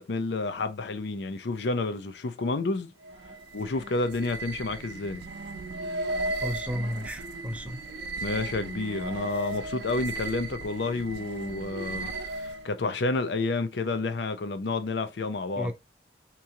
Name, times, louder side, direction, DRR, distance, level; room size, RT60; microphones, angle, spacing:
voice 1, 0.0-2.9 3.5-5.2 8.2-12.1 12.4-15.7, left 3 dB, 80° left, 0.6 m, -30 dB
sound 1, 3.0-12.7, right 2 dB, 80° right, 0.6 m, -36 dB
voice 2, 6.4-7.9 15.6-15.7, equal, 5° right, 0.4 m, -33 dB
3.6 x 3.0 x 2.8 m
head